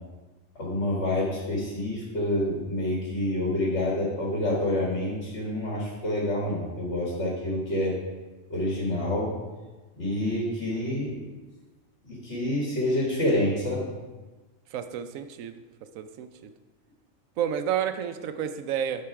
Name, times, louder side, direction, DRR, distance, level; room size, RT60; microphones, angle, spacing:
voice 1, 0.6-8.0 8.5-9.3 10.0-11.2 12.0-13.9, left 1 dB, 55° left, -4 dB, 2.0 m, -27 dB
voice 2, 14.7-15.6 15.9-16.3 17.4-19.1, right 9 dB, 80° right, 10 dB, 1.0 m, -30 dB
10.5 x 3.9 x 4.8 m, 1.2 s
omnidirectional pair, 1.4 m